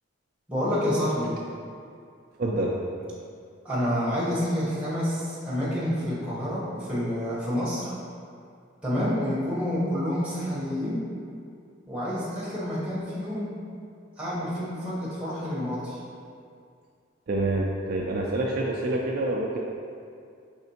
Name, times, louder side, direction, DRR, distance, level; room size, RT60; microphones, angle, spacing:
voice 1, 0.5-1.4 3.6-7.9 8.8-11.1 11.9-13.7 14.2-16.0, equal, 5° right, -9 dB, 1.0 m, -28 dB
voice 2, 2.4-2.7 17.3-19.6, right 2 dB, 45° right, -2 dB, 0.3 m, -27 dB
5.0 x 3.5 x 2.8 m, 2.4 s
head